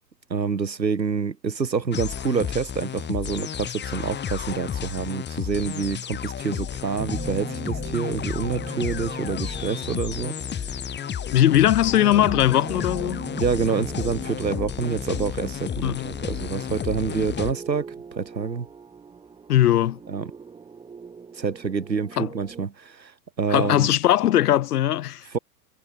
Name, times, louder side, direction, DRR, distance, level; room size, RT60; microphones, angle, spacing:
voice 1, 0.3-10.3 13.3-17.9 18.2-18.7 20.1-20.2 21.3-23.1 23.4-23.9 25.3-25.4, right 5 dB, 90° right, 1.6 m, -27 dB
sound 1, 1.9-17.5, left 9 dB, 20° left, 2.7 m, -32 dB
sound 2, 7.0-22.6, right 5 dB, 10° right, 1.0 m, -41 dB
voice 2, 11.3-13.2 15.8-16.1 19.5-20.0 22.2-22.3 23.5-25.3, left 12 dB, 65° left, 1.8 m, -20 dB
figure-of-eight pair, 95°, 50 cm